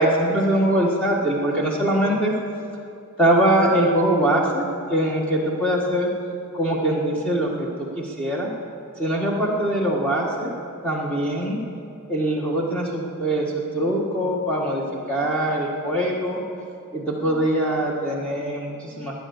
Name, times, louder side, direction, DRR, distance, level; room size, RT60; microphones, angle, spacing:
voice 1, 0.0-2.3 3.2-4.6 4.9-6.1 6.5-8.5 9.0-10.5 10.8-11.6 12.1-14.8 15.1-16.4 16.9-19.1, right 1 dB, 5° left, -3 dB, 1.5 m, -22 dB
19.0 x 9.4 x 7.1 m, 2.5 s
head